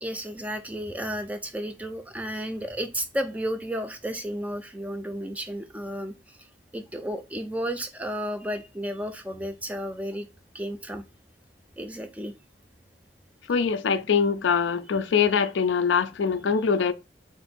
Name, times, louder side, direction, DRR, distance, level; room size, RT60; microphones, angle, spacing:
voice 1, 0.0-6.5 6.7-10.3 10.5-11.0 11.8-12.3, equal, 10° right, 0.4 m, -33 dB
voice 2, 13.5-16.9, left 6 dB, 85° left, 0.4 m, -23 dB
3.6 x 2.6 x 4.2 m
head